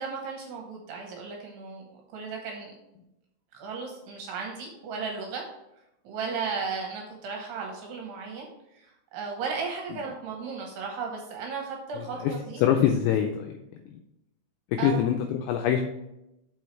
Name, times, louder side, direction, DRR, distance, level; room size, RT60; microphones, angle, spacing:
voice 1, 0.0-1.8 2.1-2.7 3.5-5.4 6.0-8.5 8.7-12.6 14.8-15.0, right 5 dB, 75° right, 0 dB, 2.6 m, -35 dB
voice 2, 12.0-12.3 12.6-13.6 13.9-14.0 14.7-15.8, left 9 dB, 85° left, 4 dB, 2.5 m, -24 dB
6.3 x 5.5 x 4.5 m, 0.88 s
omnidirectional pair, 5.6 m